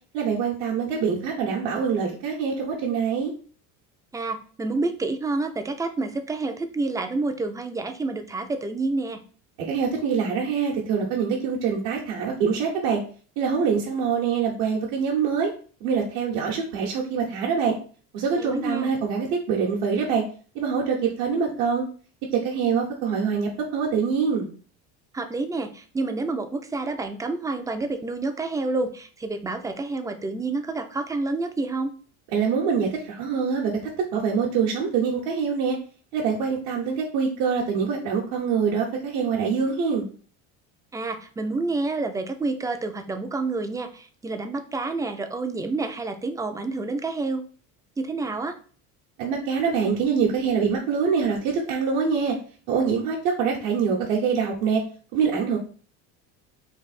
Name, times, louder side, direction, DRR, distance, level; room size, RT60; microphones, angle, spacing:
voice 1, 0.1-3.3 9.6-13.0 13.4-15.5 15.8-17.8 18.1-20.2 20.5-21.9 22.3-24.5 32.3-35.8 36.1-40.1 49.2-52.4 52.7-54.8 55.1-55.6, right 6 dB, 70° right, -3 dB, 0.9 m, -24 dB
voice 2, 4.1-9.2 18.4-18.9 25.1-31.9 40.9-47.4 48.0-48.6, right 3 dB, 10° right, 7 dB, 0.3 m, -28 dB
3.3 x 2.7 x 4.0 m, 0.42 s
cardioid pair, 120°, 34 cm